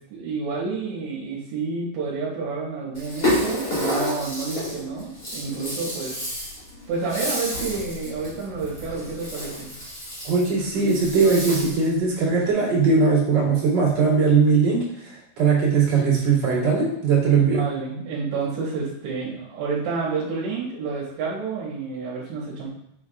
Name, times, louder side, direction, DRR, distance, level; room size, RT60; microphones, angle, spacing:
voice 1, 0.1-6.2 6.9-9.7 17.4-22.7, right 4 dB, 75° right, -5 dB, 3.4 m, -29 dB
Rattle (instrument), 2.9-11.9, left 1 dB, 20° left, 2.9 m, -30 dB
voice 2, 10.2-17.7, right 5 dB, 40° right, -9 dB, 3.2 m, -20 dB
8.2 x 7.3 x 2.5 m, 0.76 s
omnidirectional pair, 5.4 m